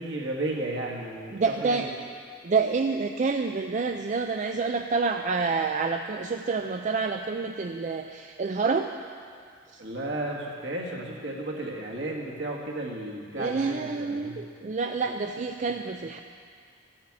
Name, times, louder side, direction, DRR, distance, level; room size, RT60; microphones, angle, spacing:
voice 1, 0.0-1.9 9.8-14.4, right 1 dB, 65° right, -2 dB, 2.0 m, -33 dB
voice 2, 1.3-1.9 2.4-8.9 9.7-9.8 13.4-16.2, right 4 dB, 40° right, 5 dB, 0.4 m, -28 dB
13.0 x 8.6 x 7.5 m, 2.2 s
head